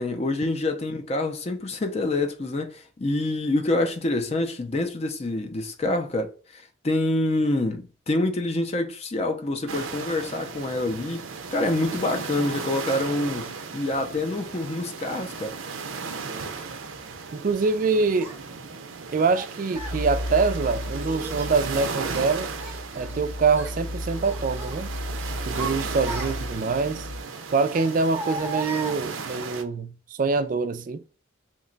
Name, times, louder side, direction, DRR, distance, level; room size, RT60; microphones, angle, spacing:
voice 1, 0.0-15.5, left 2 dB, 30° left, 0.4 m, -27 dB
sound 1, 9.7-29.6, right 5 dB, 85° right, 0.5 m, -36 dB
voice 2, 17.3-18.3 19.1-22.5 22.9-24.9 25.5-27.1 27.5-31.0, right 4 dB, 40° right, 0.3 m, -25 dB
Child speech kid speaking, 18.2-18.4 19.3-20.0 20.9-21.5 22.0-23.2 23.5-23.8 24.2-24.8 25.3-26.7 27.7-29.4, right 2 dB, 10° right, 0.6 m, -37 dB
sound 2, 19.7-27.2, left 1 dB, 80° left, 0.6 m, -34 dB
2.9 x 2.2 x 3.8 m
head